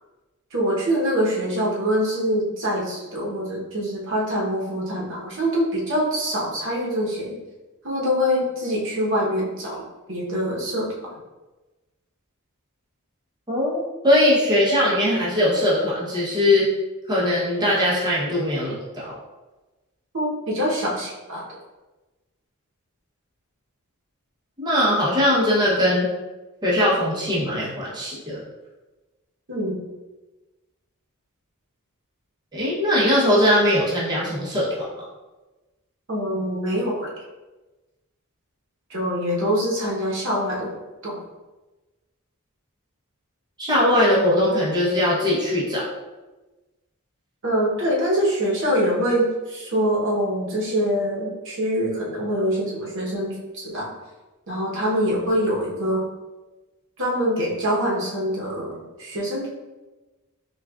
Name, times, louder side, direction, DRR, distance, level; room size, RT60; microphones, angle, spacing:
voice 1, 0.5-7.3 7.8-9.8 10.1-11.1 20.1-21.4 29.5-29.8 36.1-37.1 38.9-40.7 41.0-41.2 47.4-53.9 54.5-56.1 57.0-59.5, equal, 60° right, -4 dB, 1.0 m, -24 dB
voice 2, 13.5-16.7 17.1-19.2 24.6-26.1 26.6-28.4 32.5-35.1 43.6-45.9, left 1 dB, 20° right, -7 dB, 0.9 m, -20 dB
5.9 x 2.4 x 2.4 m, 1.1 s
head